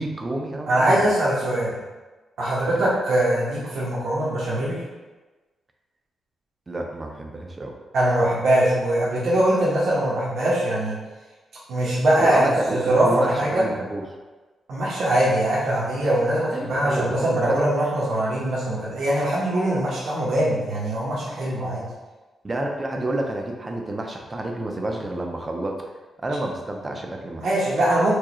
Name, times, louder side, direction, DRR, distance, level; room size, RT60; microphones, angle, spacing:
voice 1, 0.0-1.1 2.8-2.9 6.7-7.8 12.2-14.0 16.5-17.6 22.4-25.9 26.2-27.5, right 1 dB, 20° right, 1 dB, 0.5 m, -29 dB
voice 2, 0.7-1.8 2.4-4.8 7.9-11.0 11.7-13.6 14.7-21.8 27.4-28.2, right 1 dB, 70° right, -7 dB, 1.0 m, -22 dB
4.7 x 2.3 x 3.0 m, 1.2 s
wide cardioid pair, 150°, 0 cm